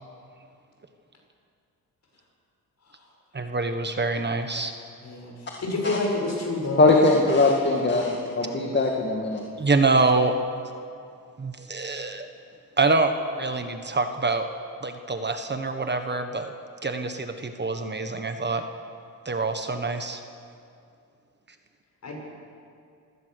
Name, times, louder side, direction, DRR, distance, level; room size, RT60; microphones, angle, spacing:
voice 1, 3.3-4.7 9.6-10.3 11.4-12.3 12.8-14.5 14.8-16.5 16.8-18.6 19.2-20.2, right 3 dB, 30° right, 7 dB, 1.3 m, -25 dB
voice 2, 5.0-5.3 5.6-7.1 7.8-8.1 8.4-8.6 22.0-22.1, left 2 dB, 50° left, -1 dB, 7.0 m, -29 dB
voice 3, 6.8-9.4, left 2 dB, 30° left, 0 dB, 2.1 m, -21 dB
25.5 x 17.0 x 6.7 m, 2.5 s
cardioid pair, 105°, 35 cm